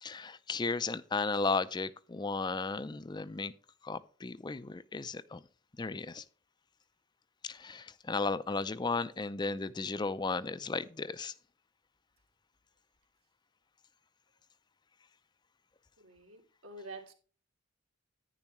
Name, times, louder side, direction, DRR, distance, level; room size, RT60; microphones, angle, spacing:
voice 1, 0.0-3.5 3.8-5.4 5.8-6.2 7.4-11.3, left 4 dB, 20° left, 0.4 m, -35 dB
voice 2, 16.0-17.1, right 2 dB, 85° right, 2.9 m, -48 dB
10.5 x 10.0 x 3.1 m
head